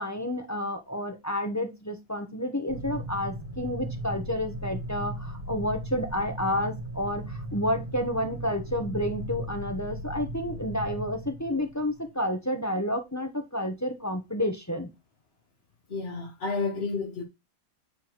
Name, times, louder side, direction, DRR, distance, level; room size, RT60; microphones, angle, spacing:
voice 1, 0.0-14.9, left 1 dB, 10° left, 0.8 m, -30 dB
sound 1, 2.7-12.3, right 1 dB, 55° right, 2.1 m, -37 dB
voice 2, 15.9-17.2, left 4 dB, 40° left, 1.1 m, -31 dB
8.4 x 4.5 x 4.5 m
omnidirectional pair, 2.0 m